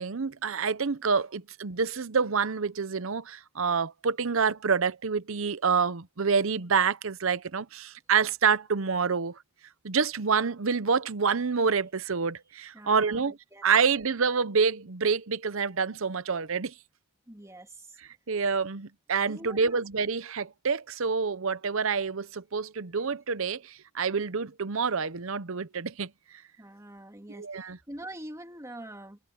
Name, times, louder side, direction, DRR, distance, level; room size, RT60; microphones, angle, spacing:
voice 1, 0.0-9.4 9.8-13.4 13.6-16.7 18.3-26.1 27.4-27.8, right 5 dB, 65° right, 0.8 m, -27 dB
voice 2, 12.7-13.6 17.3-18.0 19.2-19.8 26.6-29.2, right 1 dB, 15° right, 2.8 m, -44 dB
head